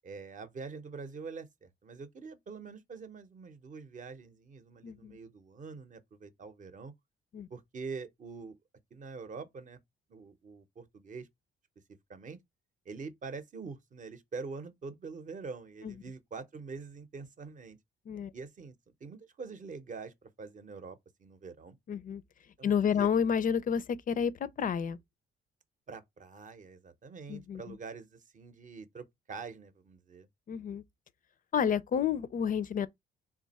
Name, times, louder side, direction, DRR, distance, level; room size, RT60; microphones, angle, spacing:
voice 1, 0.0-6.9 7.5-8.6 8.9-9.8 10.1-11.3 12.1-12.4 12.9-17.8 18.3-18.7 19.0-21.8 22.6-23.1 25.9-30.3, right 4 dB, 40° right, 0.7 m, -45 dB
voice 2, 4.8-5.2 7.3-7.5 15.8-15.9 18.1-18.3 21.9-22.2 22.6-25.0 27.3-27.8 30.5-30.8 31.5-32.9, left 7 dB, 45° left, 0.4 m, -30 dB
3.4 x 2.3 x 4.0 m
cardioid pair, 90°, 20 cm